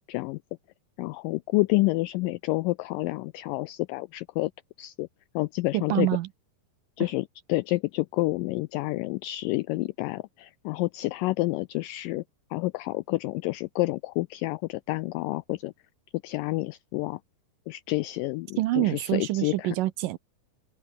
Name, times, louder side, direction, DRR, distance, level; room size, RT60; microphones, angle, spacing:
voice 1, 0.1-0.4 1.0-4.5 4.8-5.1 5.4-6.1 7.0-12.2 12.5-15.7 16.2-17.2 17.7-19.7, left 21 dB, 85° left, 1.9 m, -29 dB
voice 2, 5.7-6.3 18.6-20.2, right 16 dB, 75° right, 2.2 m, -26 dB
open air
omnidirectional pair, 4.4 m